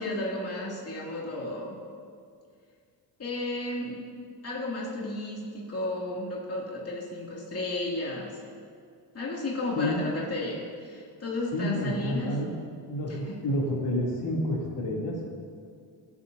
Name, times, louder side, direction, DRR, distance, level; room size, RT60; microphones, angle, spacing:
voice 1, 0.0-1.7 3.2-4.0 4.4-8.3 9.1-12.3 13.1-13.4, left 1 dB, 35° left, -4 dB, 2.5 m, -33 dB
voice 2, 9.7-10.1 11.5-12.6 12.9-15.3, left 1 dB, 70° left, -4 dB, 3.0 m, -29 dB
24.5 x 8.5 x 2.7 m, 2.3 s
cardioid pair, 110°, 44 cm